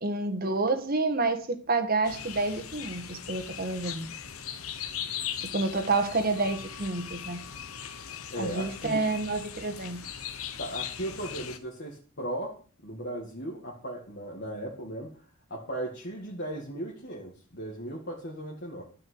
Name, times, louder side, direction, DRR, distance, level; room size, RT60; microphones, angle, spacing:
voice 1, 0.0-4.1 5.4-7.4 8.4-10.0, right 3 dB, 45° right, 8 dB, 1.5 m, -29 dB
sound 1, 2.0-11.6, left 9 dB, 85° left, 1.1 m, -39 dB
voice 2, 8.3-9.0 10.6-12.6 12.8-15.1 15.5-18.8, right 1 dB, 50° left, -3 dB, 2.1 m, -37 dB
12.5 x 5.7 x 7.8 m, 0.42 s
head